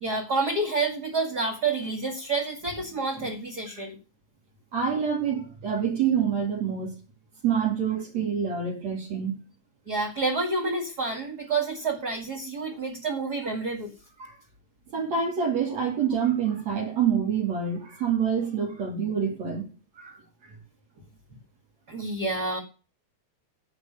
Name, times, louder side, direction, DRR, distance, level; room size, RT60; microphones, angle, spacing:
voice 1, 0.0-4.0 9.9-13.9 21.9-22.6, right 3 dB, 35° right, 2.2 m, -29 dB
voice 2, 4.7-6.9 7.4-9.4 14.2-14.4 14.9-19.7 20.0-20.2 20.4-20.5, right 7 dB, 60° right, 4.0 m, -26 dB
10.5 x 9.5 x 6.7 m
omnidirectional pair, 3.5 m